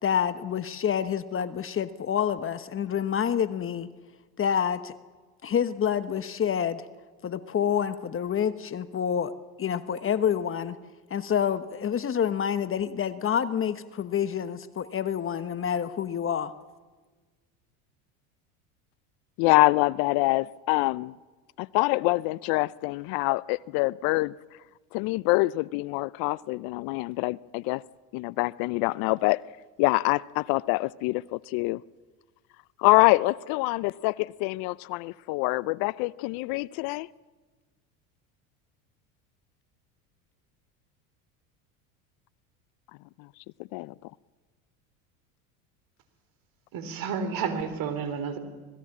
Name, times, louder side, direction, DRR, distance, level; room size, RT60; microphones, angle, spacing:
voice 1, 0.0-3.9 4.4-4.9 5.4-6.9 7.2-10.8 11.1-16.5, left 8 dB, 30° left, 1.1 m, -28 dB
voice 2, 19.4-21.1 21.6-24.3 24.9-27.8 28.1-29.4 29.8-31.8 32.8-37.1 43.7-43.9, left 22 dB, 60° left, 0.6 m, -25 dB
voice 3, 46.7-48.4, right 6 dB, 55° right, 4.0 m, -31 dB
26.0 x 19.0 x 7.4 m
hypercardioid pair, 90°, 42 cm